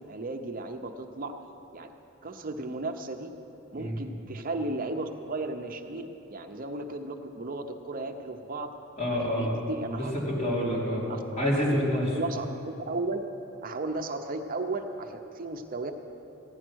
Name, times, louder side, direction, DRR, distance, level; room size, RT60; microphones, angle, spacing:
voice 1, 0.0-1.3 1.7-1.9 2.2-3.3 3.7-8.8 9.1-10.1 11.1-11.2 11.7-11.8 12.1-13.2 13.6-15.9, right 2 dB, 45° right, 5 dB, 0.7 m, -35 dB
voice 2, 9.0-9.5 10.0-11.0 11.4-12.0, equal, 35° left, -6 dB, 3.5 m, -27 dB
15.5 x 10.0 x 6.2 m, 3.0 s
head